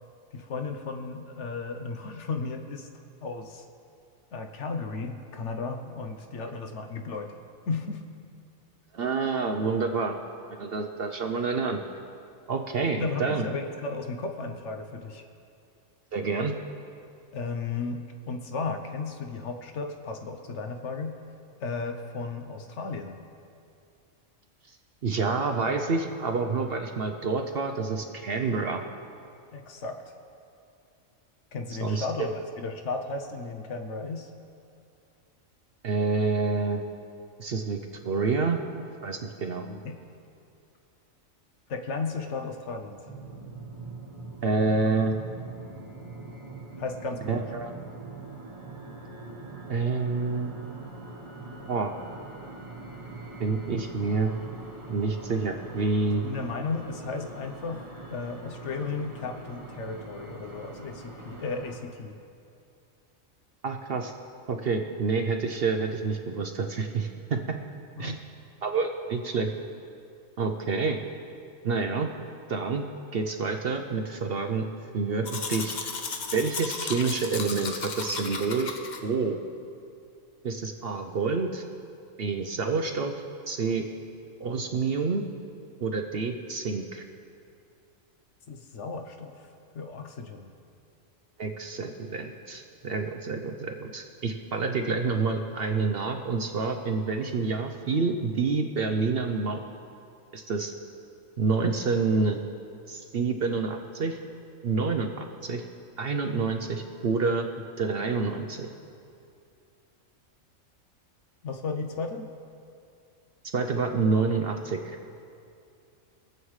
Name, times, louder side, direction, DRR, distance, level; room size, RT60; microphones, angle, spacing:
voice 1, 0.3-2.9 3.2-3.7 4.3-7.3 7.7-8.0 12.9-15.2 17.3-21.2 21.6-23.2 29.5-30.1 31.5-34.3 39.6-39.9 41.7-43.0 46.8-47.5 53.7-53.9 56.2-62.1 68.0-68.2 88.5-90.5 111.4-112.3, left 4 dB, 60° left, 5 dB, 1.0 m, -34 dB
voice 2, 8.9-10.2 10.5-11.8 12.5-13.4 16.1-16.5 25.0-28.8 31.8-32.3 35.8-36.8 37.4-37.8 38.0-38.6 39.0-39.6 44.4-45.2 47.3-47.7 49.7-50.6 51.7-51.9 53.4-54.3 54.9-56.2 63.6-64.1 64.5-67.4 68.0-68.2 68.6-69.5 70.4-71.0 71.6-72.1 72.5-72.8 73.1-74.6 74.9-75.7 76.3-78.7 79.0-79.4 80.4-81.6 82.2-83.1 83.5-83.8 84.4-85.2 85.8-87.0 91.4-99.6 100.3-100.7 101.4-102.4 102.9-104.2 104.6-105.6 106.0-107.5 107.8-108.7 113.5-115.0, right 4 dB, 55° right, 5 dB, 0.7 m, -28 dB
sound 1, 43.0-61.8, right 3 dB, 25° right, 1.2 m, -42 dB
Domestic sounds home sounds, 75.3-79.0, left 4 dB, 45° left, 0.7 m, -34 dB
23.5 x 7.9 x 3.2 m, 2.5 s
omnidirectional pair, 1.4 m